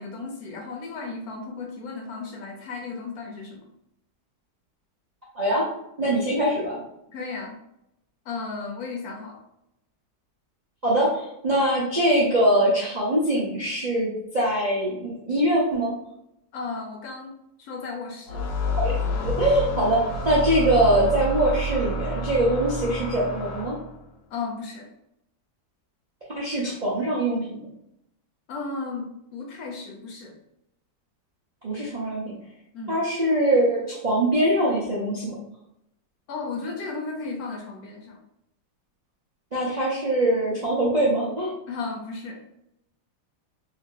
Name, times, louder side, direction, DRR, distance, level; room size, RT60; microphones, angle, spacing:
voice 1, 0.0-3.7 7.1-7.6 8.3-9.4 16.5-18.4 24.3-24.9 28.5-30.4 32.7-33.0 36.3-38.2 41.7-42.4, left 4 dB, 70° left, 1 dB, 1.0 m, -35 dB
voice 2, 6.0-6.8 10.8-14.1 14.3-15.9 18.7-23.8 26.3-27.6 31.6-32.3 32.9-35.4 39.5-41.5, right 1 dB, 50° right, -7 dB, 0.5 m, -23 dB
sound 1, 18.3-24.0, equal, 90° left, 1.3 m, -29 dB
2.8 x 2.7 x 3.7 m, 0.80 s
omnidirectional pair, 1.9 m